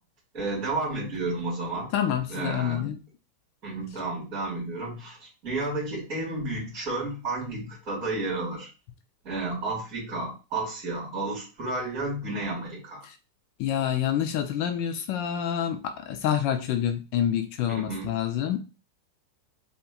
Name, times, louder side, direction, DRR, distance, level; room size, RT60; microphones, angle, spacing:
voice 1, 0.3-1.9 2.3-2.9 3.6-8.7 9.2-13.1 17.7-18.1, right 2 dB, 40° right, -5 dB, 2.1 m, -32 dB
voice 2, 1.9-3.0 13.6-18.6, left 10 dB, 55° left, 6 dB, 0.5 m, -27 dB
5.7 x 2.2 x 2.4 m, 0.31 s
supercardioid pair, 130°, 0 cm